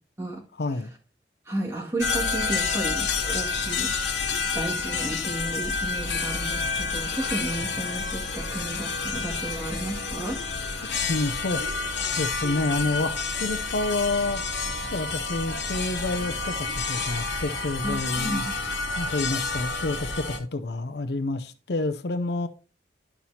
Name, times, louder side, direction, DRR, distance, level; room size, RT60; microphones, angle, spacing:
voice 1, 0.6-0.9 11.1-11.7 12.2-14.4 14.9-18.4 19.0-22.5, left 2 dB, 65° left, 0.6 m, -28 dB
voice 2, 1.5-3.9 4.5-10.8 17.8-18.5, right 1 dB, 15° right, 2.1 m, -33 dB
sound 1, 2.0-20.4, left 4 dB, 90° left, 1.3 m, -29 dB
11.0 x 5.9 x 2.8 m
head